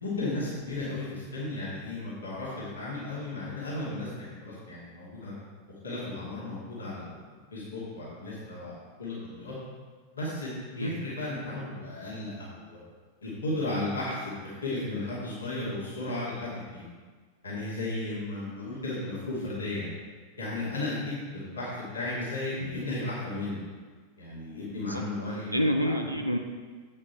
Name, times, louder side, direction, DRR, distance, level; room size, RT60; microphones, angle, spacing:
voice 1, 0.0-5.3 5.8-9.5 10.1-12.8 13.2-16.8 17.4-19.9 20.4-21.7 21.9-23.6 24.2-25.6, left 2 dB, 75° left, -8 dB, 2.5 m, -34 dB
voice 2, 24.9-26.4, equal, 90° right, 2 dB, 0.6 m, -28 dB
8.3 x 7.3 x 4.3 m, 1.5 s
figure-of-eight pair, 90°, 0 cm